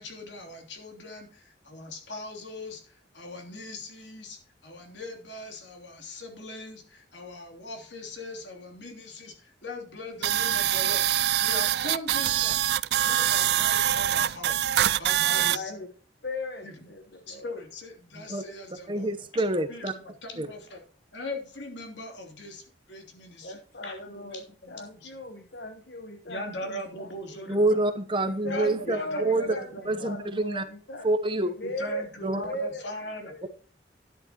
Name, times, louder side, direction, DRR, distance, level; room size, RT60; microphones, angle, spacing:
voice 1, 0.0-12.6 13.0-14.6 15.0-15.7 16.6-16.7 17.3-20.8 21.1-25.1 26.3-27.8 28.4-30.1 31.6-33.3, left 1 dB, 80° left, 2 dB, 3.1 m, -40 dB
sound 1, 10.2-15.6, right 11 dB, 60° right, 0.3 m, -24 dB
voice 2, 15.3-15.9 16.2-17.5 23.4-27.4 28.3-32.0 32.4-32.9 33.2-33.5, left 1 dB, 60° left, 6 dB, 1.3 m, -38 dB
voice 3, 18.9-19.9 20.4-20.5 27.5-29.0 29.2-29.5 29.9-30.6 31.0-31.5 32.2-32.4, right 2 dB, 25° right, 9 dB, 0.9 m, -26 dB
12.0 x 10.5 x 3.0 m, 0.44 s
head